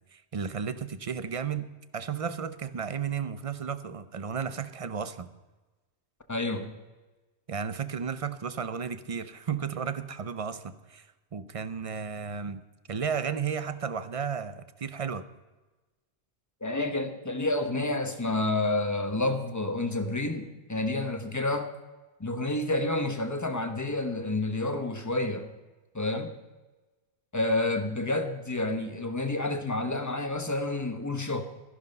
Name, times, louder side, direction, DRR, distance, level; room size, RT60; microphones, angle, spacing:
voice 1, 0.1-1.7 1.9-5.3 7.5-12.6 12.9-15.2, right 6 dB, 40° right, 0.6 m, -33 dB
voice 2, 6.3-6.7 16.6-21.7 22.2-25.5 25.9-26.3 27.3-31.4, left 2 dB, 15° left, 1.0 m, -29 dB
13.5 x 11.0 x 5.3 m
omnidirectional pair, 1.2 m